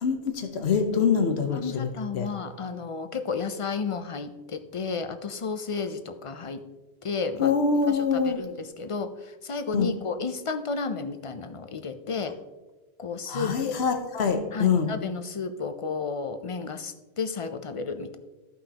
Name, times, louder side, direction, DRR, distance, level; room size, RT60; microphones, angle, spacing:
voice 1, 0.0-1.9 2.1-2.3 7.4-8.4 9.7-9.9 13.3-14.9, left 5 dB, 90° left, 6 dB, 1.1 m, -24 dB
voice 2, 1.5-6.6 7.0-7.5 7.9-12.4 13.0-13.8 14.5-18.2, left 4 dB, 45° left, 9 dB, 0.4 m, -32 dB
14.5 x 5.5 x 2.8 m, 1.1 s
omnidirectional pair, 1.1 m